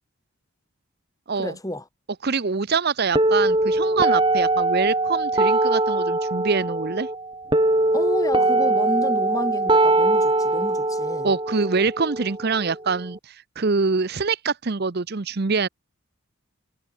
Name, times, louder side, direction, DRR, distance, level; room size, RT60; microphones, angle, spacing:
voice 1, 1.4-1.9 7.9-11.3, left 1 dB, 15° left, 4.3 m, -30 dB
voice 2, 2.2-7.1 11.2-15.7, right 4 dB, 45° right, 0.7 m, -24 dB
sound 1, 3.2-13.2, right 2 dB, 20° right, 2.4 m, -22 dB
head